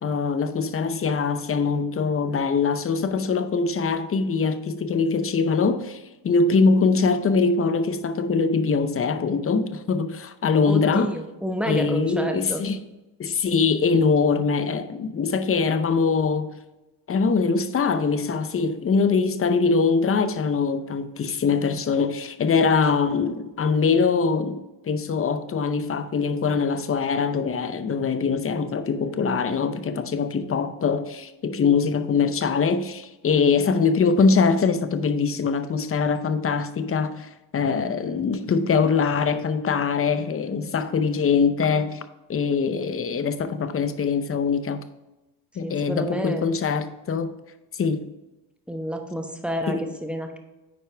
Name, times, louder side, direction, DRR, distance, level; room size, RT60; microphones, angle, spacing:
voice 1, 0.0-11.1 11.7-12.8 13.2-16.5 17.1-42.0 42.3-44.8 45.6-47.3 47.7-48.1 49.7-49.9, left 5 dB, 30° left, 0.6 m, -23 dB
voice 2, 10.7-12.6 45.6-46.5 48.7-50.4, equal, ahead, 1.0 m, -29 dB
9.3 x 4.7 x 3.4 m
cardioid pair, 105°, 47 cm